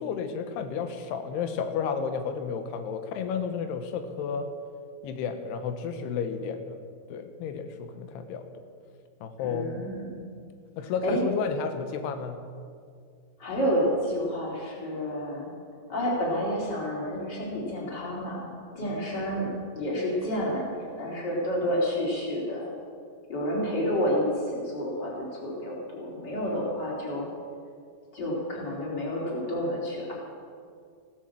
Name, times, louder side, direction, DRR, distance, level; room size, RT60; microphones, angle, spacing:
voice 1, 0.0-4.5 5.0-6.8 7.1-8.6 9.2-9.7 10.8-12.4, left 6 dB, 90° left, 7 dB, 3.1 m, -32 dB
voice 2, 9.4-10.3 11.0-11.2 13.4-15.5 15.9-22.7 23.3-27.3 28.1-30.1, equal, 25° left, -4 dB, 4.1 m, -30 dB
16.5 x 11.0 x 7.5 m, 2.2 s
omnidirectional pair, 4.6 m